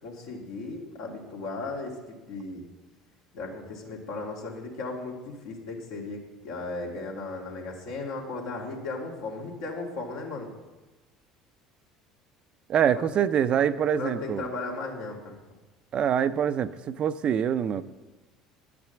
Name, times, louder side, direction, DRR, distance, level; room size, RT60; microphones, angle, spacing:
voice 1, 0.0-1.9 2.3-2.6 3.3-10.5 13.0-13.1 14.0-15.4, left 3 dB, 75° left, -1 dB, 2.4 m, -36 dB
voice 2, 12.7-14.5 15.9-17.8, right 8 dB, 50° right, 13 dB, 0.5 m, -25 dB
10.0 x 6.0 x 7.8 m, 1.2 s
hypercardioid pair, 70°, 2 cm